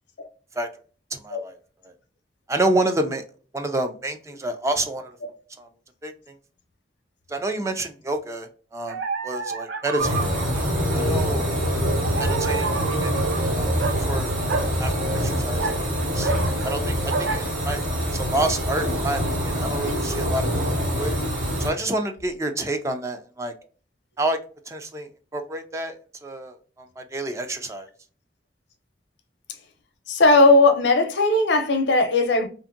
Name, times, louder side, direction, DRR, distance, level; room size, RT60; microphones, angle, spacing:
voice 1, 1.1-1.5 2.5-3.2 3.5-5.2 5.6-5.7 6.0-6.3 7.3-10.2 11.1-11.5 12.2-12.7 13.0-13.2 13.5-13.8 14.1-15.7 16.1-16.3 16.6-17.8 18.1-20.5 20.9-21.2 21.6-23.5 24.2-24.4 24.7-26.0 26.2-27.9, right 2 dB, 15° right, 0.3 m, -28 dB
sound 1, 8.9-10.5 12.0-13.4 13.8-14.0 14.5-14.7 15.4-16.8 17.1-17.4, right 4 dB, 90° right, 0.4 m, -29 dB
sound 2, 10.0-21.7, equal, 50° right, 1.1 m, -25 dB
voice 2, 30.1-32.5, left 2 dB, 75° left, 0.6 m, -17 dB
2.6 x 2.5 x 2.5 m
head